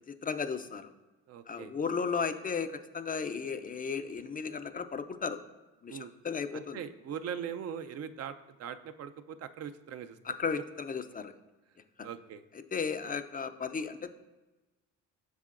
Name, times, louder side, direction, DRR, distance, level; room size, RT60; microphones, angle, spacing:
voice 1, 0.1-0.9 1.5-5.4 5.8-6.8 10.2-11.3 12.0-12.1 12.7-14.2, left 5 dB, 30° left, 9 dB, 0.4 m, -35 dB
voice 2, 1.3-1.7 5.9-6.1 6.5-10.2 12.0-12.4, right 8 dB, 55° right, 10 dB, 0.4 m, -41 dB
8.2 x 5.7 x 2.5 m, 1.1 s
cardioid pair, 90°, 30 cm